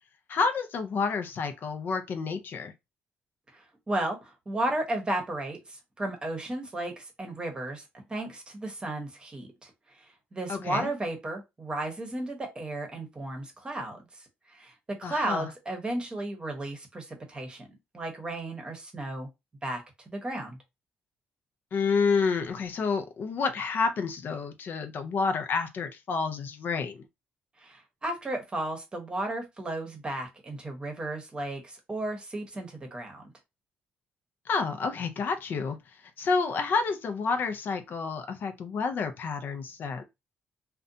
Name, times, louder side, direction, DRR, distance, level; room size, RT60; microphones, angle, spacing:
voice 1, 0.3-2.7 10.5-10.9 15.0-15.5 21.7-27.0 34.5-35.8 36.2-40.0, left 4 dB, 55° left, 0.5 m, -29 dB
voice 2, 3.5-17.7 17.9-19.3 19.6-20.6 27.6-33.2, right 1 dB, 25° right, 0.8 m, -34 dB
2.5 x 2.2 x 2.6 m
cardioid pair, 100°, 4 cm